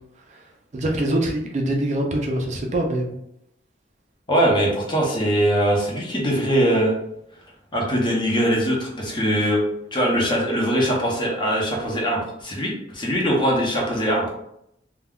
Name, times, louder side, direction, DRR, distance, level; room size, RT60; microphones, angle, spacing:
voice 1, 0.7-3.1, right 1 dB, 40° right, 1 dB, 0.4 m, -24 dB
voice 2, 4.3-6.9 7.7-9.6 9.9-14.2, equal, 25° left, -2 dB, 0.7 m, -21 dB
2.2 x 2.2 x 3.5 m, 0.78 s
head